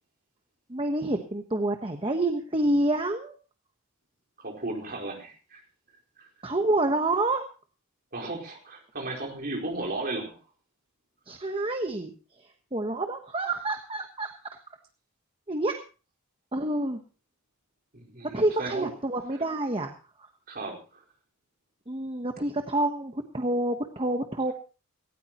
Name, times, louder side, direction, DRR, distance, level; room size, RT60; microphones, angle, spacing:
voice 1, 0.7-3.4 6.4-7.4 11.3-14.3 15.5-15.8 16.5-17.0 18.3-19.9 20.2-20.3 21.9-24.5, right 2 dB, 25° right, 5 dB, 1.1 m, -28 dB
voice 2, 4.4-5.6 6.2-6.3 8.1-10.4 11.3-11.4 17.9-18.9 20.5-21.0, right 2 dB, 45° right, 0 dB, 4.4 m, -35 dB
18.0 x 17.0 x 3.0 m, 0.34 s
head